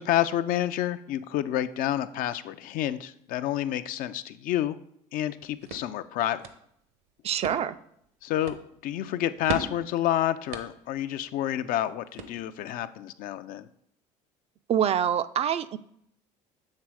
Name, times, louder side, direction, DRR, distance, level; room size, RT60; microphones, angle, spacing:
voice 1, 0.0-4.8 5.1-6.4 8.2-8.6 8.8-13.7, left 12 dB, 60° left, 12 dB, 0.4 m, -29 dB
sound 1, 5.2-12.8, right 4 dB, 70° right, 0.9 m, -41 dB
voice 2, 7.2-7.8 14.7-15.8, right 9 dB, 40° right, 13 dB, 0.4 m, -25 dB
7.5 x 3.3 x 4.7 m, 0.72 s
hypercardioid pair, 75°, 16 cm